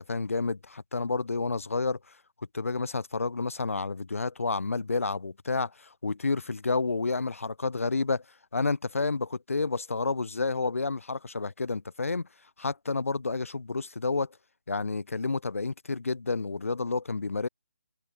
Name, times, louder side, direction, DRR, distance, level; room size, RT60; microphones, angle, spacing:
voice 1, 0.0-2.0 2.5-8.2 8.5-12.2 12.6-14.4 14.7-17.5, left 3 dB, 85° left, 0.4 m, -30 dB
figure-of-eight pair, 150°, 7 cm